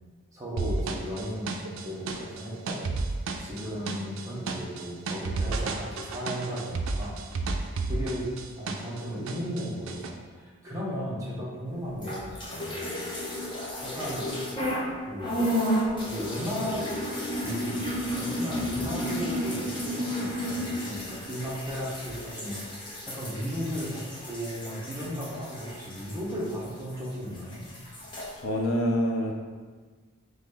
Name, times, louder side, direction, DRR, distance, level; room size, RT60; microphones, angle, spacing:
voice 1, 0.3-2.8 3.4-7.2 7.9-8.3 8.6-12.9 13.8-14.3 14.9-15.4 16.1-16.9 17.4-17.8 18.1-27.7, equal, 15° right, -7 dB, 0.9 m, -35 dB
sound 1, 0.6-9.0 9.3-10.1, right 3 dB, 60° right, 0.4 m, -32 dB
sound 2, 11.9-14.9 15.2-27.1 27.4-28.3, equal, 20° left, 0.7 m, -32 dB
voice 2, 28.4-29.3, equal, 60° left, 1 dB, 0.6 m, -26 dB
3.9 x 3.2 x 3.7 m, 1.5 s
head